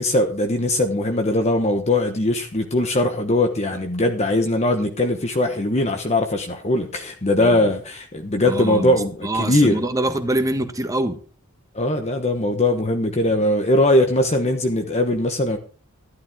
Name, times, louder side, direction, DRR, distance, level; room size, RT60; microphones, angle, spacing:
voice 1, 0.0-9.8 11.7-15.6, left 1 dB, 30° left, 5 dB, 1.2 m, -20 dB
voice 2, 8.5-9.0 9.2-11.2, right 1 dB, 15° right, 8 dB, 1.4 m, -24 dB
13.0 x 12.0 x 3.6 m, 0.36 s
head